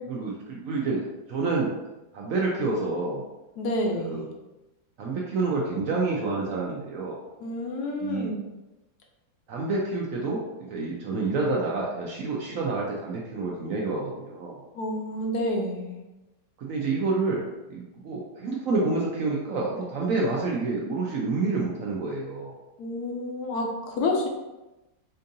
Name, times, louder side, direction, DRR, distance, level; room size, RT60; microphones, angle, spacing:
voice 1, 0.1-1.7 2.1-3.2 4.0-4.2 5.0-7.2 8.0-8.3 9.5-14.6 16.6-22.5, right 3 dB, 70° right, -3 dB, 0.8 m, -28 dB
voice 2, 3.6-4.3 7.4-8.3 14.7-16.0 22.8-24.3, left 1 dB, 70° left, 0 dB, 1.1 m, -29 dB
4.4 x 2.5 x 2.7 m, 1.0 s
omnidirectional pair, 1.8 m